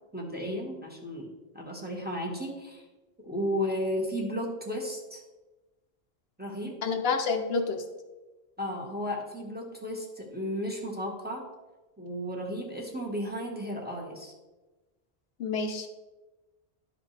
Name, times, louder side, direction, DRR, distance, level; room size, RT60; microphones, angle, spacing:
voice 1, 0.1-2.9 3.2-5.2 6.4-6.8 8.6-11.4 12.0-14.3, equal, 10° right, -2 dB, 1.1 m, -34 dB
voice 2, 6.8-7.8 15.4-15.9, left 4 dB, 70° left, 4 dB, 0.9 m, -28 dB
11.5 x 5.1 x 3.2 m, 1.2 s
omnidirectional pair, 1.1 m